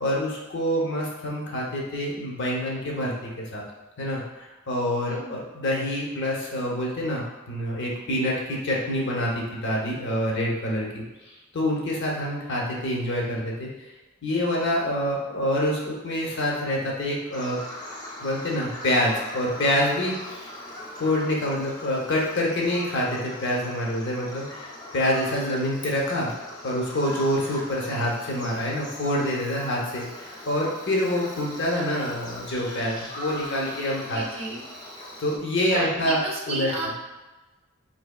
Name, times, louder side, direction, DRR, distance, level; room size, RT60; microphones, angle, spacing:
voice 1, 0.0-3.6 4.0-13.7 14.2-17.6 18.2-20.5 21.0-26.3 26.6-34.2 35.2-36.2 36.5-36.7, left 1 dB, 60° left, -3 dB, 0.8 m, -26 dB
voice 2, 5.0-5.4 34.1-34.6 35.7-37.0, right 2 dB, 30° right, -2 dB, 0.6 m, -32 dB
Bird vocalization bird call bird song, 17.3-35.4, left 1 dB, 20° left, 0.4 m, -41 dB
4.0 x 2.8 x 2.3 m, 1.2 s
head